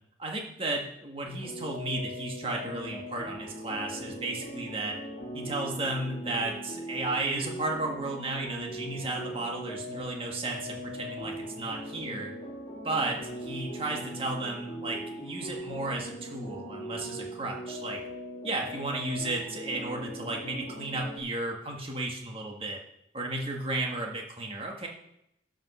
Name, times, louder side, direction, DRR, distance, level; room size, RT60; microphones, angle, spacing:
voice 1, 0.2-5.0 5.3-12.3 12.8-18.0 18.4-22.8 23.1-24.9, right 2 dB, 30° right, 0 dB, 1.8 m, -34 dB
sound 1, 1.2-21.2, equal, 35° left, 2.0 m, -40 dB
12.5 x 5.3 x 5.6 m, 0.79 s
head